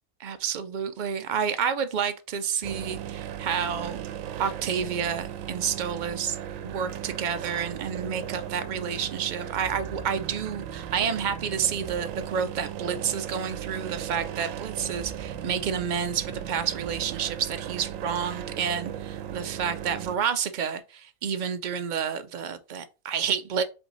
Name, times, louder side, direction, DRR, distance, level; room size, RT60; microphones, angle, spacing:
voice 1, 0.2-4.0 4.4-6.4 6.6-23.6, right 7 dB, 70° right, 0.4 m, -30 dB
sound 1, 2.6-20.2, right 10 dB, 90° right, 1.0 m, -36 dB
5.2 x 3.4 x 2.9 m
omnidirectional pair, 1.3 m